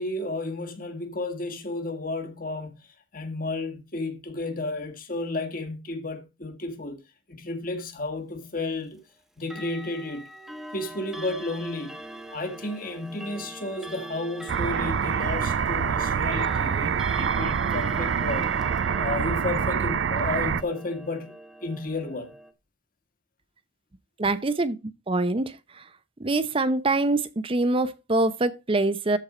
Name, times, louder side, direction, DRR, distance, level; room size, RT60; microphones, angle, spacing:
voice 1, 0.0-2.8 3.1-7.0 7.3-9.0 9.4-10.3 10.7-12.0 12.3-18.5 19.0-21.3 21.6-22.3, left 2 dB, 50° left, 2.0 m, -32 dB
Clock, 9.4-22.5, right 1 dB, ahead, 1.1 m, -41 dB
sound 1, 14.5-20.6, right 7 dB, 85° right, 0.4 m, -26 dB
voice 2, 24.2-24.8 25.1-25.6 26.2-29.2, right 2 dB, 30° right, 0.7 m, -24 dB
13.5 x 4.6 x 5.0 m
head